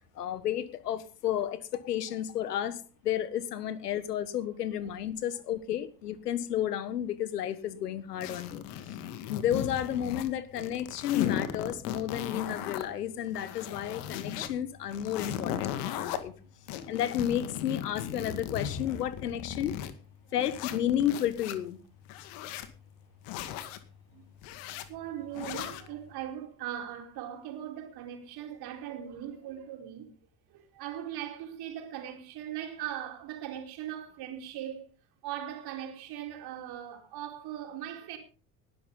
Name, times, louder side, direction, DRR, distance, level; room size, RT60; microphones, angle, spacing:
voice 1, 0.1-9.0 9.3-16.3 16.9-19.8 20.3-21.8, left 10 dB, 75° left, 1.6 m, -32 dB
sound 1, 8.2-10.3 10.6-12.8 13.3-14.5 14.9-16.2 16.7-19.9 20.4-21.6 22.1-22.7 23.2-23.8 24.4-24.9 25.3-25.9, left 10 dB, 55° left, 2.2 m, -36 dB
voice 2, 8.5-9.0 16.4-16.9 17.6-17.8 20.2-20.3 22.5-22.6 24.1-24.3 24.9-30.1 30.5-34.9 35.2-38.2, right 10 dB, 50° right, 4.4 m, -40 dB
19.5 x 12.0 x 3.9 m
figure-of-eight pair, 65°, 48 cm